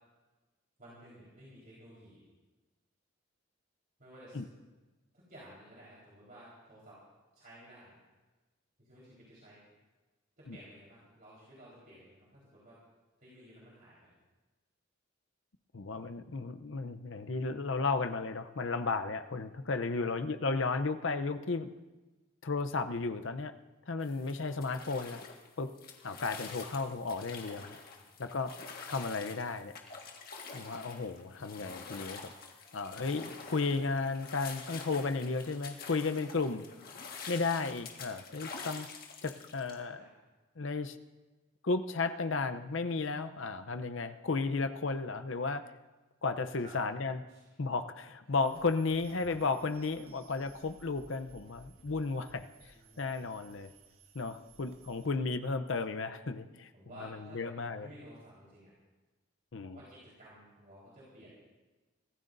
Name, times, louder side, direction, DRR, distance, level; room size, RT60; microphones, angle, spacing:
voice 1, 0.8-2.3 4.0-4.4 5.1-7.0 7.3-8.0 8.8-9.6 10.4-12.8 13.2-14.1 19.9-20.0 27.9-28.1 33.4-33.6 39.9-40.1 44.0-44.2 46.6-46.9 47.3-47.4 48.2-48.3 50.3-50.5 52.7-53.3 54.9-55.0 56.7-58.7 59.6-61.3, right 1 dB, 45° right, -7 dB, 4.3 m, -55 dB
voice 2, 15.7-21.7 22.4-23.5 23.9-25.2 25.6-25.7 26.0-27.8 28.2-28.5 28.9-29.7 30.5-32.3 32.7-36.7 37.3-38.9 39.2-40.1 40.6-41.0 41.6-45.6 46.2-47.2 47.6-53.7 54.1-56.7 57.0-57.9 59.5-59.8, left 3 dB, 65° left, 9 dB, 0.7 m, -34 dB
sound 1, 24.0-39.8, left 5 dB, 45° left, 1.6 m, -47 dB
sound 2, 48.4-55.2, right 3 dB, 85° right, 1.6 m, -58 dB
25.0 x 15.0 x 2.6 m, 1.2 s
head